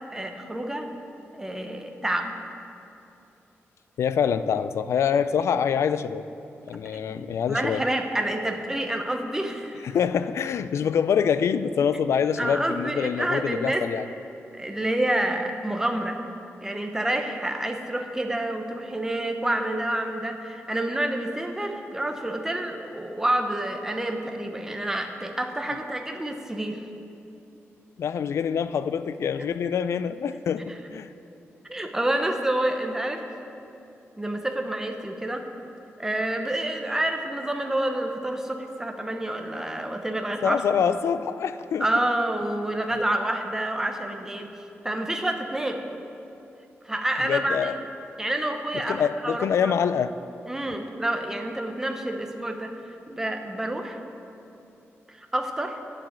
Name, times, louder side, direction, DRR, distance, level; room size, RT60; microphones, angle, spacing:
voice 1, 0.1-0.9 1.3-2.3 6.9-7.2 7.5-9.9 12.4-13.8 14.5-16.2 16.6-26.8 31.7-33.2 34.2-35.5 36.0-40.6 41.8-44.5 44.8-45.8 46.8-47.7 48.2-49.7 50.5-52.7 53.1-54.0 55.1-55.8, right 1 dB, 10° right, 4 dB, 0.9 m, -28 dB
voice 2, 4.0-6.3 6.7-7.8 9.8-14.1 25.7-25.8 28.0-31.1 40.4-41.9 47.2-47.8 48.9-50.1, left 7 dB, 75° left, 13 dB, 0.4 m, -25 dB
8.9 x 7.5 x 8.8 m, 2.8 s
wide cardioid pair, 150°, 5 cm